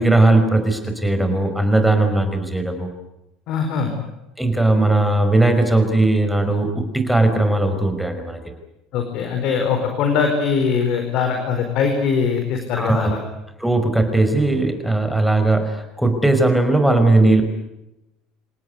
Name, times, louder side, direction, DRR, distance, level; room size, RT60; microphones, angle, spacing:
voice 1, 0.0-2.9 4.4-8.4 12.7-13.1 13.6-17.4, right 2 dB, ahead, 7 dB, 5.3 m, -18 dB
voice 2, 3.5-3.9 8.9-13.2, left 6 dB, 60° left, 5 dB, 4.5 m, -21 dB
28.0 x 18.0 x 9.6 m, 0.91 s
hypercardioid pair, 70°, 0 cm